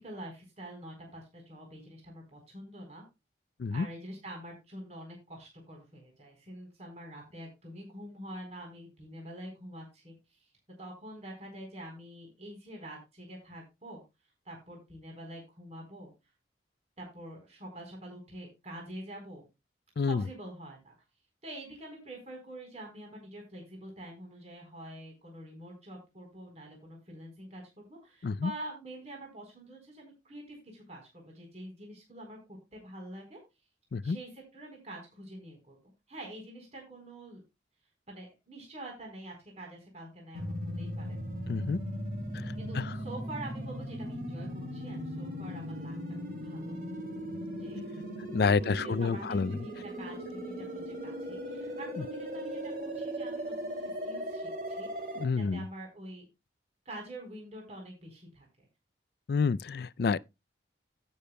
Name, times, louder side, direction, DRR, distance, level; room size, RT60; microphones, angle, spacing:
voice 1, 0.0-3.0 3.7-10.5 10.8-14.0 14.5-16.1 17.0-19.4 20.1-20.9 21.4-33.4 34.0-35.8 36.1-37.4 38.1-41.2 42.3-46.0 46.3-46.7 47.6-47.8 48.6-56.3 56.9-58.5, right 1 dB, 35° right, 4.0 m, -46 dB
sound 1, 40.3-55.2, equal, 50° right, 2.7 m, -38 dB
voice 2, 41.5-41.8 47.7-47.8 48.3-49.5 55.2-55.6 59.3-60.2, left 4 dB, 55° left, 0.4 m, -28 dB
16.5 x 6.8 x 2.2 m
head